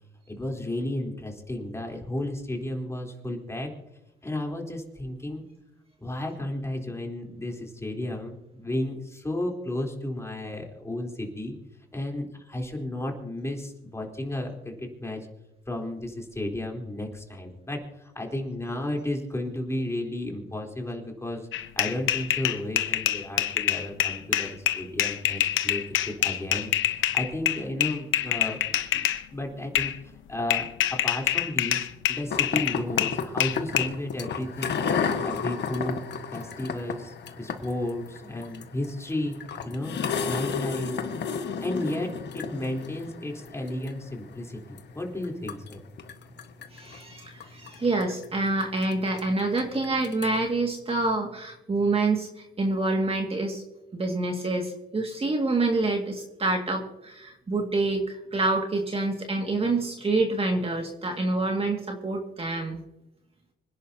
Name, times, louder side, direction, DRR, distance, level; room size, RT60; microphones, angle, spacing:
voice 1, 0.3-3.7 4.2-5.4 6.0-11.6 11.9-15.3 15.7-21.5 21.8-34.8 35.2-36.0 36.3-39.9 40.3-40.9 41.6-45.8, left 1 dB, 15° left, 0 dB, 3.7 m, -33 dB
sound 1, 21.5-29.2 29.7-30.0 30.5-33.9, left 12 dB, 80° left, 1.0 m, -26 dB
sound 2, 32.3-50.5, left 6 dB, 60° left, 1.5 m, -33 dB
voice 2, 46.7-52.3 52.6-53.6 53.9-62.8, right 2 dB, 30° right, 2 dB, 2.1 m, -27 dB
26.0 x 10.5 x 2.8 m, 0.93 s
cardioid pair, 90°, 20 cm